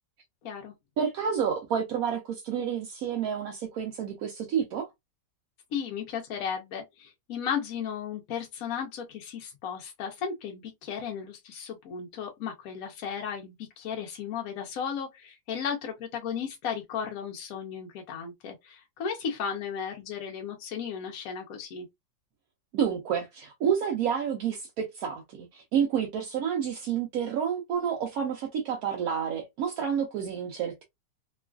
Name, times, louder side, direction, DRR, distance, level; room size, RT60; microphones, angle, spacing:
voice 1, 0.4-0.7 5.7-21.9, left 7 dB, 65° left, 0.9 m, -35 dB
voice 2, 1.0-4.9 22.7-30.8, right 8 dB, 70° right, 0.9 m, -29 dB
3.1 x 2.4 x 2.2 m
omnidirectional pair, 2.0 m